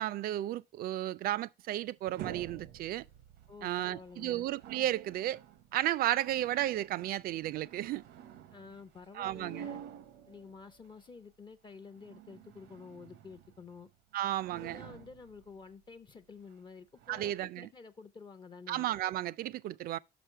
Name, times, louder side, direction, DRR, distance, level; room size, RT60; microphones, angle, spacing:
voice 1, 0.0-3.1 3.6-5.4 5.7-8.0 9.1-9.7 14.1-14.8 17.1-17.7 18.7-20.0, right 13 dB, 60° right, 0.4 m, -33 dB
sound 1, 1.8-11.1 11.7-13.9 14.2-15.7 16.5-16.6 16.9-17.3, right 9 dB, 85° right, 0.7 m, -50 dB
voice 2, 3.5-4.5 8.5-9.8 10.3-13.9 14.5-18.9, left 5 dB, 25° left, 0.6 m, -50 dB
5.9 x 5.1 x 4.5 m
cardioid pair, 110°, 17 cm